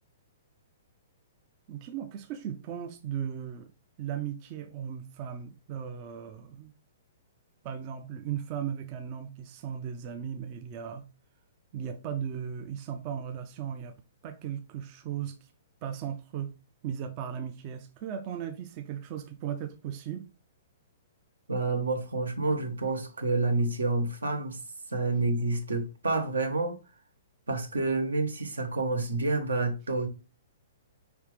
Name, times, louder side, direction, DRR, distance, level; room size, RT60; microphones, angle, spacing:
voice 1, 1.7-3.7 4.0-6.7 7.6-11.1 11.7-13.9 14.2-15.5 15.8-16.5 16.8-20.3, right 9 dB, 40° right, 0.5 m, -37 dB
voice 2, 21.5-24.6 24.9-26.8 27.5-30.1, right 3 dB, 75° right, 0.9 m, -28 dB
4.9 x 3.3 x 3.2 m
figure-of-eight pair, 115°, 0 cm